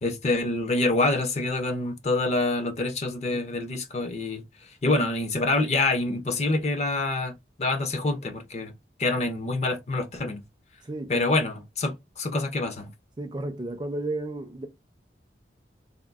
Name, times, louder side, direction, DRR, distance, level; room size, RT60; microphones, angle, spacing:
voice 1, 0.0-4.4 4.8-7.3 7.6-8.7 9.0-10.4 11.1-12.9, left 2 dB, 35° left, 0.5 m, -26 dB
voice 2, 10.9-11.3 13.2-14.7, right 2 dB, 25° right, 0.4 m, -33 dB
3.5 x 2.2 x 2.3 m
head